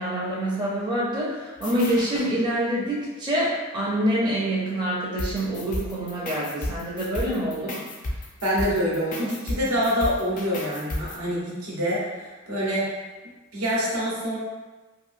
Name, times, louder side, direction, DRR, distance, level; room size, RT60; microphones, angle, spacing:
voice 1, 0.0-7.8, right 1 dB, 20° right, -7 dB, 0.5 m, -26 dB
sound 1, 1.6-2.3 5.2-11.2, left 1 dB, 35° left, 0.4 m, -33 dB
voice 2, 8.4-12.9 13.5-14.4, equal, 75° right, -6 dB, 0.8 m, -26 dB
2.8 x 2.5 x 2.5 m, 1.2 s
head